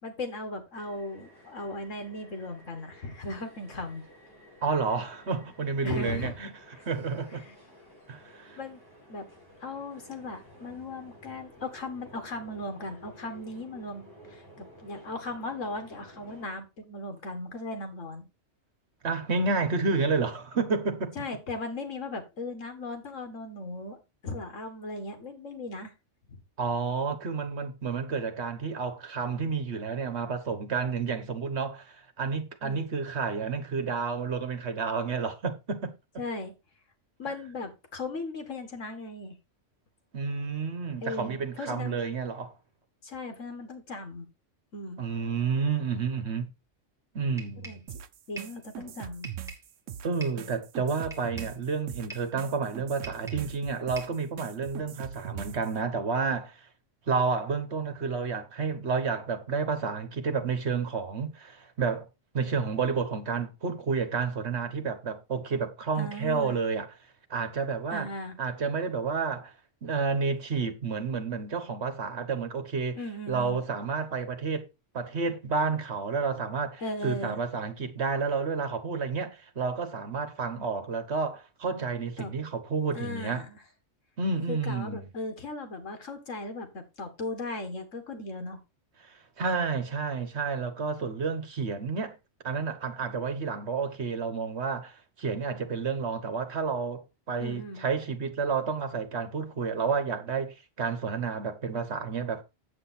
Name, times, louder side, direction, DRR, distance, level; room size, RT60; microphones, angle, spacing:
voice 1, 0.0-4.0 5.8-6.3 6.7-6.8 7.3-7.5 8.6-8.8 9.1-9.3 9.6-18.3 21.2-25.9 26.3-26.4 32.6-32.9 36.2-36.5 37.2-39.4 41.0-42.0 43.0-44.3 44.7-45.0 47.7-47.8 48.3-49.3 66.0-66.6 67.9-68.4 73.0-73.6 76.8-77.4 82.2-82.3 82.9-83.6 84.5-88.6 97.4-97.9, left 2 dB, 85° left, 2.2 m, -37 dB
sound 1, 0.7-16.5, left 1 dB, 15° left, 5.7 m, -53 dB
voice 2, 4.6-6.5 6.8-7.4 8.1-8.6 19.0-21.1 26.6-35.9 40.1-42.5 45.0-46.5 47.1-47.8 50.0-56.6 57.1-62.1 62.3-66.9 67.3-68.1 68.4-69.5 69.8-73.0 73.3-74.7 74.9-83.4 84.2-85.1 89.0-92.2 92.4-102.4, right 5 dB, 60° right, 1.6 m, -30 dB
sound 2, 47.4-47.9 48.4-48.6 49.2-49.7 50.2-50.5 51.1-51.6 52.1-52.4 53.0-53.5 54.0-54.2, right 2 dB, ahead, 2.5 m, -44 dB
sound 3, 47.9-55.7, right 10 dB, 85° right, 1.1 m, -41 dB
8.7 x 7.8 x 4.2 m
omnidirectional pair, 1.3 m